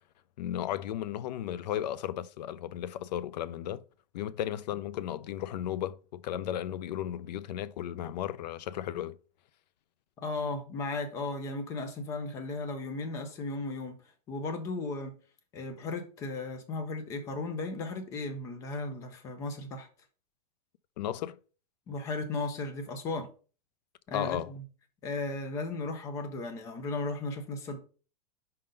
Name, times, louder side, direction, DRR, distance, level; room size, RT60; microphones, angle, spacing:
voice 1, 0.4-3.8 4.1-9.2 21.0-21.4 24.1-24.5, left 11 dB, 90° left, 0.5 m, -35 dB
voice 2, 10.2-14.0 14.3-15.2 15.5-19.9 21.9-23.3 24.1-24.6 25.0-27.8, left 3 dB, 15° left, 0.5 m, -35 dB
5.5 x 3.8 x 5.1 m
supercardioid pair, 180°, 21 cm